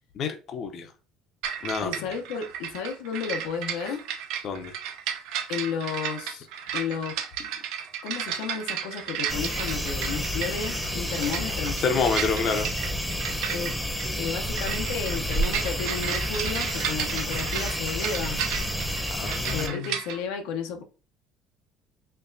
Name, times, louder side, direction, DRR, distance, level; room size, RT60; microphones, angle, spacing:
voice 1, 0.2-0.9 1.6-1.9 4.4-4.7 11.8-12.7 19.1-19.9, left 5 dB, 50° left, 0.6 m, -28 dB
sound 1, 1.4-20.2, right 9 dB, 80° right, 0.6 m, -34 dB
voice 2, 1.8-4.0 5.5-6.5 6.7-7.5 8.0-11.8 13.5-13.8 14.1-18.4 19.5-20.8, left 6 dB, 85° left, 0.7 m, -33 dB
sound 2, 9.3-19.7, equal, 5° left, 0.7 m, -30 dB
4.5 x 3.0 x 2.6 m
cardioid pair, 110°, 0 cm